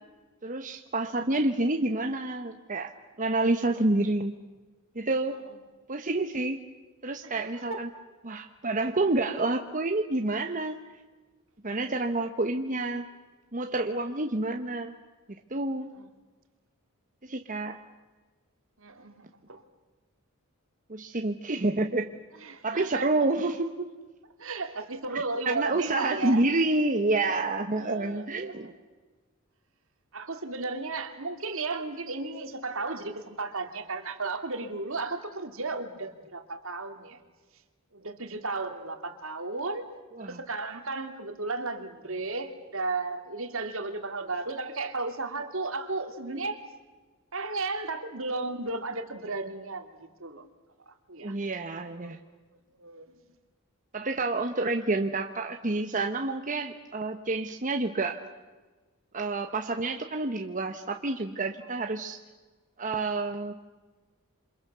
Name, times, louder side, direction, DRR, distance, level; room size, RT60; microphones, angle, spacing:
voice 1, 0.4-2.9 3.2-4.3 4.9-5.4 5.9-6.6 7.0-7.9 8.2-10.8 11.6-13.0 13.5-14.9 15.3-15.9 17.2-17.8 20.9-22.1 22.6-23.9 25.4-28.7 40.2-40.4 51.2-52.2 53.9-58.2 59.1-62.2 62.8-63.6, right 2 dB, 35° right, 5 dB, 1.1 m, -28 dB
voice 2, 7.2-7.8 15.9-16.1 18.8-19.6 22.4-23.1 24.4-26.4 27.8-28.7 30.1-37.2 37.9-39.8 40.2-46.6 47.3-50.5 51.1-51.4 52.0-52.1 52.8-53.1, right 3 dB, 65° right, 6 dB, 2.7 m, -34 dB
28.0 x 26.5 x 6.9 m, 1.3 s
head